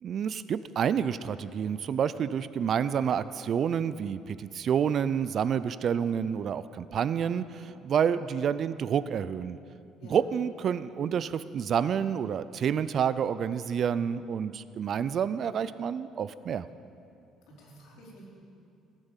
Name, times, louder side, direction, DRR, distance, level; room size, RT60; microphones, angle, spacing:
voice 1, 0.0-9.6 10.1-16.7, right 8 dB, 40° right, 15 dB, 0.4 m, -29 dB
voice 2, 10.0-10.3 17.5-18.2, equal, 70° left, -5 dB, 4.6 m, -50 dB
17.5 x 9.0 x 7.3 m, 2.5 s
cardioid pair, 160°, 0 cm